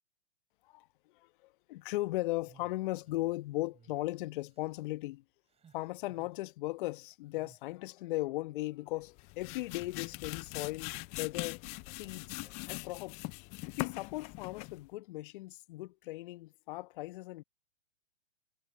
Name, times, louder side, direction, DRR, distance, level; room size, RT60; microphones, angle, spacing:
voice 1, 1.1-5.2 5.7-11.6 11.9-12.4 12.7-13.2 13.7-17.4, left 19 dB, 45° left, 1.2 m, -37 dB
sound 1, 2.4-3.3 3.7-4.0 4.3-4.8 5.5-6.4 7.3-7.7, right 7 dB, 15° right, 6.2 m, -62 dB
sound 2, 9.0-14.9, left 27 dB, 20° left, 0.4 m, -42 dB
sound 3, 9.6-12.9, left 5 dB, 80° left, 4.7 m, -66 dB
hypercardioid pair, 115°, 36 cm